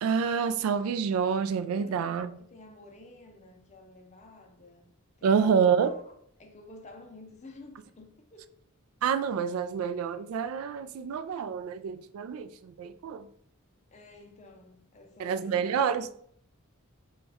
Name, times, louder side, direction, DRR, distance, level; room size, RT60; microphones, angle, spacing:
voice 1, 0.0-2.4 5.2-5.9 9.0-13.3 15.2-16.1, right 6 dB, 90° right, 0.3 m, -27 dB
voice 2, 1.8-4.9 5.2-6.1 6.4-8.5 13.9-15.9, left 2 dB, 35° left, 0.5 m, -51 dB
4.0 x 2.3 x 3.4 m
head